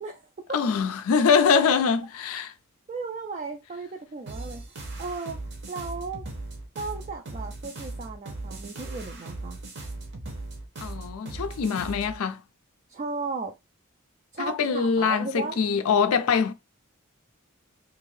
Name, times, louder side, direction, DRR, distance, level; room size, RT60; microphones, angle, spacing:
voice 1, 0.0-0.6 2.9-4.6 5.0-5.4 5.7-6.2 6.8-9.6 12.9-13.5 14.3-15.6, right 4 dB, 35° right, 0.3 m, -35 dB
voice 2, 0.5-2.5 10.8-12.4 14.4-16.5, left 6 dB, 85° left, 0.4 m, -23 dB
sound 1, 4.3-12.2, right 2 dB, 50° right, 0.8 m, -38 dB
2.7 x 2.5 x 3.1 m
head